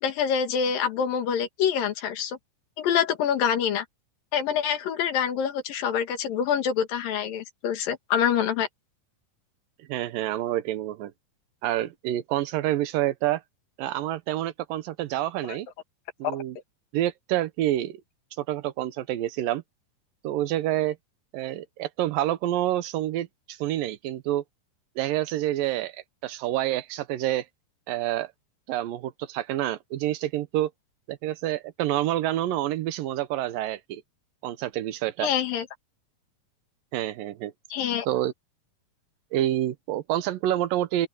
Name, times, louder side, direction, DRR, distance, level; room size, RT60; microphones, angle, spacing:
voice 1, 0.0-2.4 2.8-3.9 4.3-8.7 16.3-16.4 35.2-35.7 37.7-38.1, left 8 dB, 90° left, 3.5 m, -26 dB
voice 2, 9.8-11.1 11.6-13.4 13.8-15.7 16.2-16.6 16.9-18.0 18.4-19.6 20.2-21.0 21.3-24.4 25.0-27.5 27.9-28.3 28.7-30.7 31.1-34.0 34.4-35.3 36.9-37.5 38.1-38.3 39.3-41.1, right 13 dB, 85° right, 2.6 m, -28 dB
open air
omnidirectional pair, 3.9 m